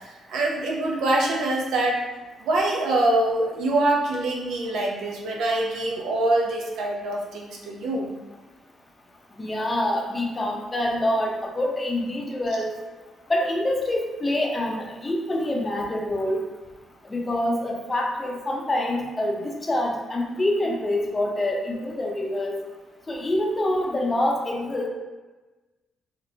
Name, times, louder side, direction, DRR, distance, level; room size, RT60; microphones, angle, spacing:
voice 1, 0.0-2.0 2.4-8.1, right 2 dB, 80° right, -1 dB, 0.6 m, -24 dB
voice 2, 9.4-12.7 13.3-16.4 17.1-22.6 23.1-24.9, left 1 dB, 25° left, 0 dB, 0.6 m, -26 dB
3.6 x 2.8 x 2.7 m, 1.2 s
cardioid pair, 90°, 0 cm